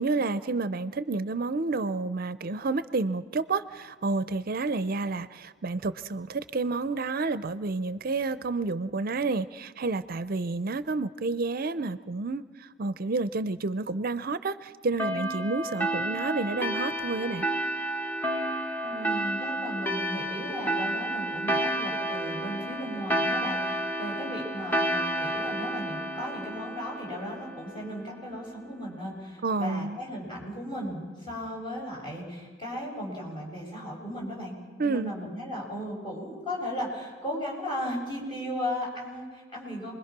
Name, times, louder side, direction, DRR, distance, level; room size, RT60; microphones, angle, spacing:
voice 1, 0.0-17.5 29.4-30.0 34.8-35.1, right 3 dB, 55° right, 14 dB, 0.6 m, -30 dB
sound 1, 15.0-28.1, right 1 dB, 10° left, 1.4 m, -31 dB
voice 2, 18.8-34.5 34.8-39.9, equal, 25° left, -2 dB, 6.8 m, -36 dB
27.5 x 21.5 x 6.0 m, 1.5 s
head